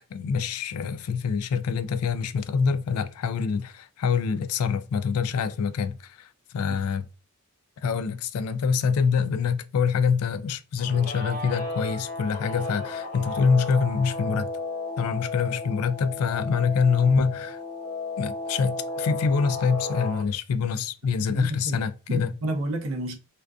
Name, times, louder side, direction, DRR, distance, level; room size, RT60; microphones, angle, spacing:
voice 1, 0.1-7.0 7.8-14.5 15.0-17.6 18.2-22.3, left 5 dB, 70° left, 0.3 m, -25 dB
Guitar, 10.8-20.2, left 3 dB, 45° left, 0.8 m, -34 dB
voice 2, 21.3-23.2, right 2 dB, 65° right, 0.6 m, -31 dB
2.5 x 2.2 x 2.3 m
head